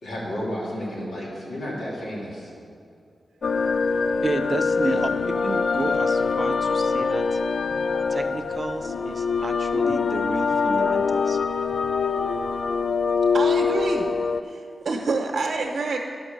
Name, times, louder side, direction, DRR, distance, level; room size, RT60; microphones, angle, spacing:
voice 1, 0.0-2.5 4.9-5.1, equal, 90° left, -6 dB, 3.0 m, -32 dB
sound 1, 3.4-14.4, left 5 dB, 60° left, 0.3 m, -24 dB
voice 2, 4.2-5.1 5.4-7.4 8.1-11.4, right 3 dB, 30° right, 7 dB, 0.6 m, -31 dB
voice 3, 13.3-14.1 14.4-16.0, right 3 dB, 60° right, 0 dB, 1.0 m, -27 dB
11.5 x 6.1 x 6.7 m, 2.4 s
wide cardioid pair, 120°, 0 cm